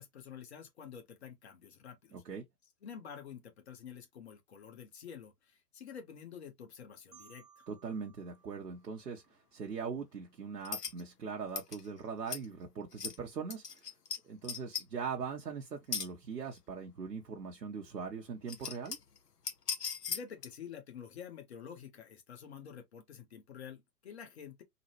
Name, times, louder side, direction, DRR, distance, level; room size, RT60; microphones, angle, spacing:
voice 1, 0.0-2.2 2.8-7.6 20.0-24.6, left 7 dB, 40° left, 1.1 m, -49 dB
voice 2, 2.1-2.4 7.7-13.9 14.2-19.0, right 6 dB, 65° right, 0.9 m, -41 dB
Marimba xylophone, 7.1-9.9, right 7 dB, ahead, 0.5 m, -63 dB
sound 1, 10.6-11.0 11.6-11.8 12.3-12.4 12.9-13.2 13.5-14.2 14.4-14.8 15.9-16.1 16.5-16.6 17.9-18.0 18.4-19.2 19.4-20.5, left 6 dB, 65° left, 0.9 m, -38 dB
3.9 x 2.2 x 2.9 m
figure-of-eight pair, 125°, 50 cm